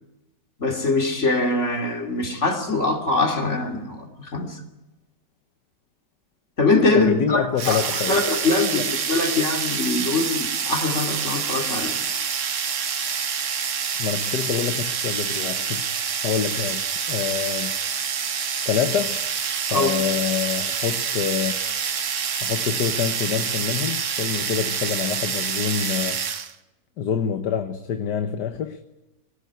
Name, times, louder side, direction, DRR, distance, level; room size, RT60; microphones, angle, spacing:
voice 1, 0.6-4.6 6.6-7.8 8.1-12.0 19.7-19.9, left 3 dB, 45° left, 3.2 m, -23 dB
voice 2, 6.9-8.2 14.0-17.8 18.7-19.2 19.7-21.6 22.4-26.2 27.0-28.8, left 8 dB, 80° left, 1.6 m, -26 dB
sound 1, 7.6-26.5, right 7 dB, 50° right, 1.4 m, -27 dB
23.5 x 18.5 x 9.4 m
omnidirectional pair, 1.8 m